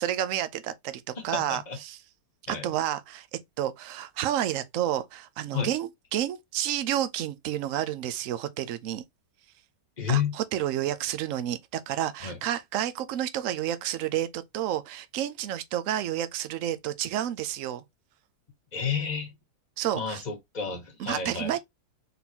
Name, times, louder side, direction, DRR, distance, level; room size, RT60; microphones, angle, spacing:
voice 1, 0.0-2.0 2.5-3.3 3.6-9.0 10.1-17.8 19.8-20.2 21.0-21.6, right 11 dB, 65° right, 0.8 m, -30 dB
voice 2, 1.2-1.8 2.5-2.7 5.5-5.7 10.0-10.3 12.2-12.4 18.7-19.3 19.9-21.6, left 7 dB, 30° left, 1.2 m, -30 dB
3.9 x 3.9 x 2.8 m
omnidirectional pair, 1.8 m